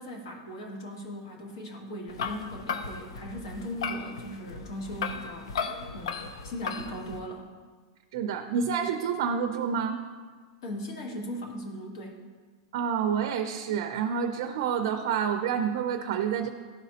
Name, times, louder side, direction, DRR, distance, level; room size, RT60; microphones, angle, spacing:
voice 1, 0.0-5.7 5.9-7.5 10.6-12.2, equal, 60° left, 1 dB, 1.4 m, -38 dB
sound 1, 2.1-7.2, left 6 dB, 85° left, 0.5 m, -36 dB
voice 2, 8.1-10.0 12.7-16.5, right 7 dB, 50° right, 6 dB, 0.4 m, -28 dB
12.0 x 4.1 x 2.8 m, 1.5 s
supercardioid pair, 175°, 2 cm